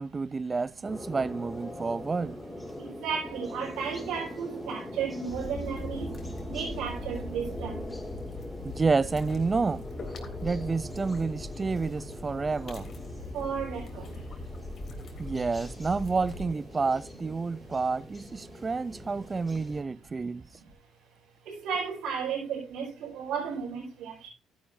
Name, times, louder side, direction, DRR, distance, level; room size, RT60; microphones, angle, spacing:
voice 1, 0.0-2.4 8.6-9.8 10.4-12.9 15.2-20.4, right 4 dB, 30° right, 0.5 m, -29 dB
sound 1, 0.8-19.8, left 1 dB, 10° left, 4.7 m, -42 dB
voice 2, 2.8-6.1 6.5-7.8 13.3-14.1 21.5-24.3, right 6 dB, 75° right, 5.3 m, -34 dB
sound 2, 5.3-16.5, left 2 dB, 50° left, 3.5 m, -41 dB
14.0 x 10.5 x 2.7 m
supercardioid pair, 80°, 0 cm